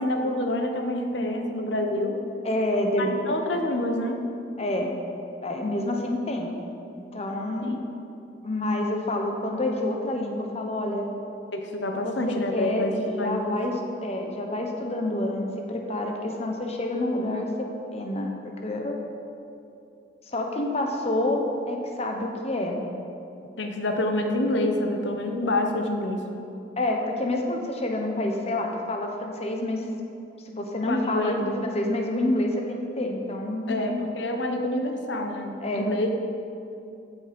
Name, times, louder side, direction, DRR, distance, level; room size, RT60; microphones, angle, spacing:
voice 1, 0.0-2.2 3.0-4.2 7.6-7.7 11.5-13.6 23.6-26.3 30.9-31.5 33.7-36.2, left 1 dB, 90° left, 4 dB, 1.0 m, -27 dB
voice 2, 2.4-3.4 4.6-4.9 5.4-6.5 7.0-7.8 8.4-11.1 11.9-19.0 20.3-22.8 26.8-29.9 30.5-34.0 35.6-35.9, left 1 dB, 35° left, 2 dB, 1.0 m, -28 dB
15.0 x 6.2 x 5.3 m, 2.7 s
head